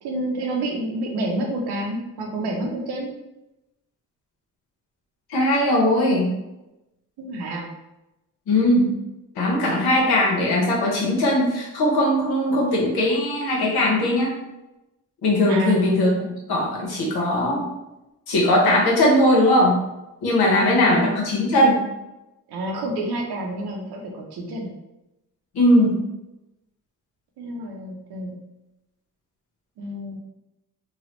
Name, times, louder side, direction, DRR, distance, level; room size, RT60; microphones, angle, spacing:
voice 1, 0.0-3.1 7.2-7.7 15.5-15.8 20.4-21.1 22.5-24.7 27.4-28.4 29.8-30.2, right 1 dB, 90° right, 1 dB, 0.7 m, -29 dB
voice 2, 5.3-6.4 8.5-8.9 9.4-14.3 15.2-16.1 16.5-17.7 18.3-19.8 20.2-21.8 25.5-26.0, left 1 dB, 80° left, -3 dB, 1.1 m, -19 dB
3.1 x 2.3 x 3.0 m, 0.94 s
supercardioid pair, 55°, 38 cm